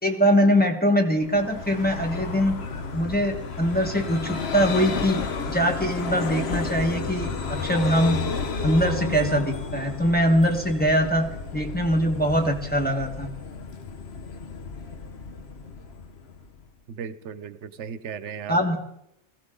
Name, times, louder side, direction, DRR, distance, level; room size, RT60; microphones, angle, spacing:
voice 1, 0.0-2.6 2.9-8.2 8.6-13.3 18.5-18.8, equal, 10° left, 1 dB, 1.4 m, -23 dB
Vehicle, 1.2-16.7, left 4 dB, 65° left, 1.2 m, -32 dB
voice 2, 16.9-18.6, right 7 dB, 90° right, 14 dB, 1.0 m, -36 dB
20.0 x 15.0 x 3.9 m, 0.81 s
omnidirectional pair, 1.2 m